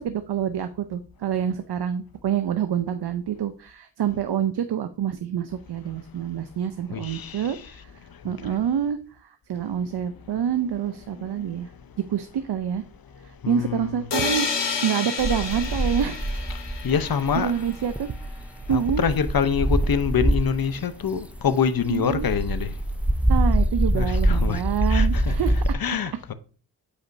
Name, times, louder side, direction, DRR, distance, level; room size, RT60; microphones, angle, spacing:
voice 1, 0.0-7.9 8.2-11.7 12.1-12.8 13.5-14.5 14.8-16.4 17.3-18.1 18.7-19.0 21.9-22.3 23.3-25.8, right 9 dB, 70° right, 0.7 m, -27 dB
voice 2, 6.9-7.6 8.2-8.3 11.2-11.5 13.4-14.1 16.8-17.5 18.7-22.7 23.9-24.6 24.9-25.3 25.7-26.3, left 7 dB, 55° left, 0.8 m, -26 dB
sound 1, 14.1-17.9, left 5 dB, 80° left, 1.2 m, -30 dB
sound 2, 15.2-20.7 21.2-25.7, right 1 dB, 5° right, 0.4 m, -24 dB
8.4 x 5.1 x 2.7 m
cardioid pair, 55°, 42 cm